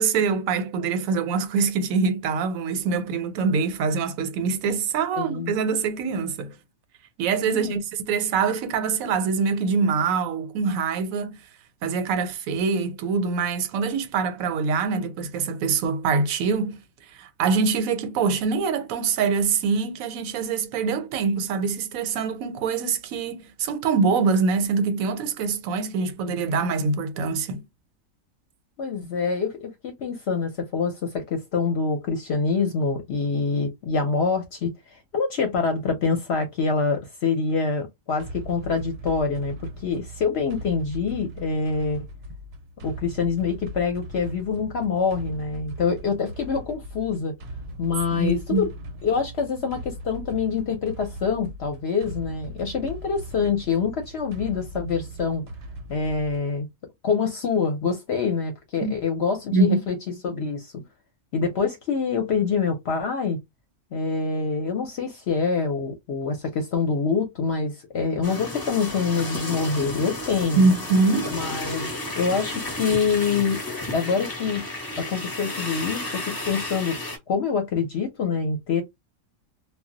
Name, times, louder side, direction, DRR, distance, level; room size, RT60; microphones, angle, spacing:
voice 1, 0.0-6.5 7.2-11.4 11.8-16.8 17.2-27.6 48.2-48.7 58.8-58.9 59.5-59.8 60.3-60.4 70.6-71.3, right 4 dB, 85° right, 1.0 m, -24 dB
voice 2, 5.1-5.5 7.4-7.8 28.8-34.7 35.1-42.1 42.8-47.3 47.8-48.7 49.0-55.5 55.9-56.7 57.0-59.9 60.2-60.8 61.3-63.4 63.9-70.7 71.3-73.6 73.9-74.6 75.0-78.8, left 5 dB, 60° left, 0.8 m, -25 dB
sound 1, 38.2-56.6, right 1 dB, 60° right, 0.7 m, -39 dB
sound 2, 68.2-77.2, left 2 dB, 25° left, 0.6 m, -32 dB
2.2 x 2.0 x 3.7 m
omnidirectional pair, 1.4 m